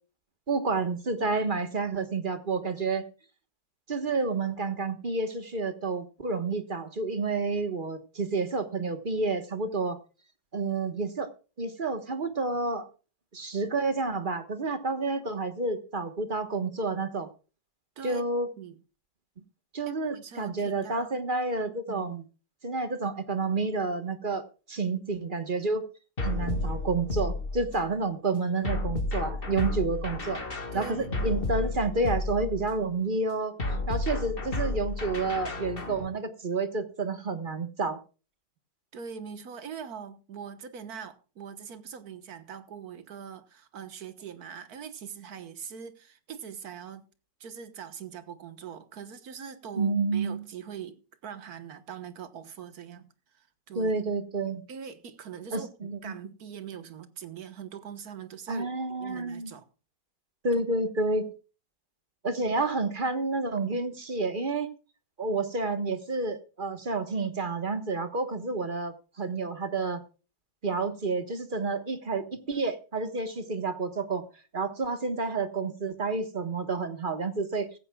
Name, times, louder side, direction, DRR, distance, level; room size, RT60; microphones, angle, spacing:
voice 1, 0.5-3.0 3.9-10.0 10.5-11.3 11.6-12.9 13.3-17.3 18.0-18.5 19.7-22.2 22.6-25.9 26.2-30.4 30.7-33.6 33.9-38.0 49.8-50.4 53.7-54.6 55.5-56.1 58.5-59.5 60.4-61.3 62.2-64.7 65.2-70.0 70.6-74.2 74.5-77.7, right 3 dB, 30° right, 1.3 m, -29 dB
voice 2, 19.9-21.2 21.7-22.1 30.7-31.4 38.9-47.0 47.4-53.1 53.3-53.9 54.7-58.7 59.0-59.6 60.5-60.6, right 7 dB, 60° right, 1.7 m, -42 dB
sound 1, 26.2-27.9 28.6-32.8 33.6-36.1, left 2 dB, 30° left, 2.0 m, -32 dB
16.0 x 15.0 x 2.3 m
omnidirectional pair, 1.9 m